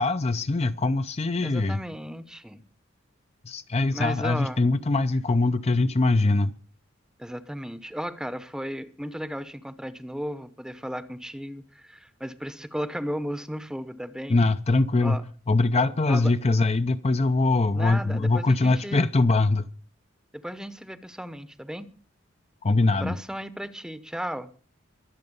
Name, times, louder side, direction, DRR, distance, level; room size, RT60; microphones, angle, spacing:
voice 1, 0.0-1.8 3.4-6.5 14.3-15.2 15.5-19.7 22.6-23.2, left 2 dB, 30° left, 0.6 m, -22 dB
voice 2, 1.4-2.6 3.9-4.6 7.2-14.4 15.0-15.2 16.1-16.3 17.7-19.1 20.3-21.9 22.9-24.5, equal, 5° right, 0.8 m, -35 dB
23.0 x 7.8 x 5.4 m
head